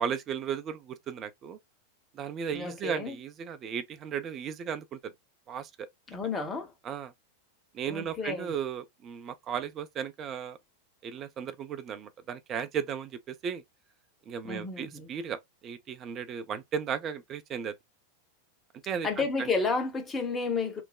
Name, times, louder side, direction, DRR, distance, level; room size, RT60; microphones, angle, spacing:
voice 1, 0.0-1.6 2.1-5.1 5.5-5.9 6.8-7.1 7.7-10.6 11.0-13.6 14.3-17.7 18.8-19.5, right 7 dB, 30° right, 0.5 m, -35 dB
voice 2, 2.5-3.2 6.1-6.7 7.9-8.5 14.4-15.1 19.0-20.8, left 4 dB, 15° left, 0.8 m, -31 dB
3.2 x 2.0 x 2.3 m
figure-of-eight pair, 90°, 0 cm